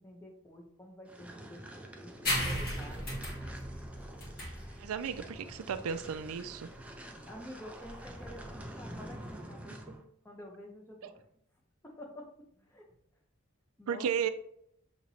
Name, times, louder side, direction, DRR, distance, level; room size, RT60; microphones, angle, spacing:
voice 1, 0.0-3.1 7.3-11.1 11.8-12.3 12.6-12.8 13.8-14.1, equal, 10° left, 0 dB, 0.8 m, -49 dB
sound 1, 1.1-10.0, right 1 dB, 5° right, 0.3 m, -47 dB
sound 2, 2.2-9.4, left 1 dB, 45° left, 1.9 m, -38 dB
voice 2, 4.8-6.7 11.0-11.1 13.9-14.3, right 7 dB, 85° right, 11 dB, 0.4 m, -34 dB
6.5 x 3.0 x 2.8 m, 0.71 s
head